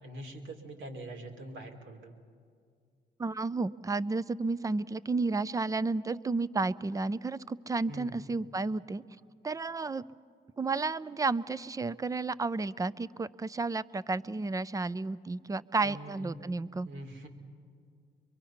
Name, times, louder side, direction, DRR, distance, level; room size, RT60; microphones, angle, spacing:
voice 1, 0.0-2.2 7.9-8.2 15.8-16.4 16.8-17.3, right 1 dB, 80° right, 3 dB, 2.4 m, -44 dB
voice 2, 3.2-9.0 9.4-10.0 10.6-16.9, right 3 dB, 15° right, 16 dB, 0.4 m, -32 dB
24.0 x 23.5 x 5.8 m, 2.2 s
cardioid pair, 90°, 20 cm